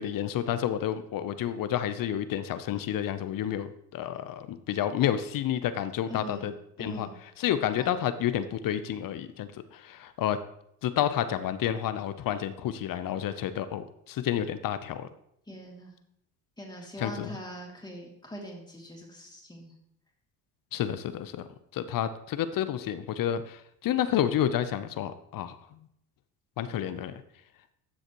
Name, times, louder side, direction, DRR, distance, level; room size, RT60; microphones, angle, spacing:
voice 1, 0.0-6.5 6.8-7.1 7.4-10.4 10.8-15.1 17.0-17.4 20.7-21.5 21.7-25.5 26.6-27.2, left 10 dB, 50° left, 12 dB, 0.7 m, -30 dB
voice 2, 6.1-6.5 6.8-7.2 7.6-8.0 15.5-15.9 16.6-19.7, equal, 10° left, -1 dB, 2.6 m, -42 dB
12.5 x 6.4 x 3.0 m, 0.73 s
supercardioid pair, 80°, 45 cm